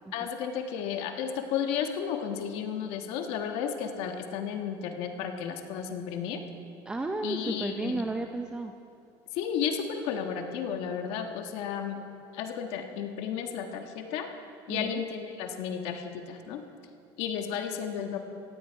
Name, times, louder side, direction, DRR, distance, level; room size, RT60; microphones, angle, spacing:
voice 1, 0.1-6.4 7.2-8.0 9.3-12.0 12.3-14.3 14.7-16.6 17.2-18.2, left 7 dB, 70° left, 5 dB, 1.4 m, -33 dB
voice 2, 6.9-8.7 14.7-15.0, right 2 dB, 10° right, 5 dB, 0.6 m, -33 dB
17.5 x 15.0 x 4.6 m, 2.5 s
cardioid pair, 140°, 10 cm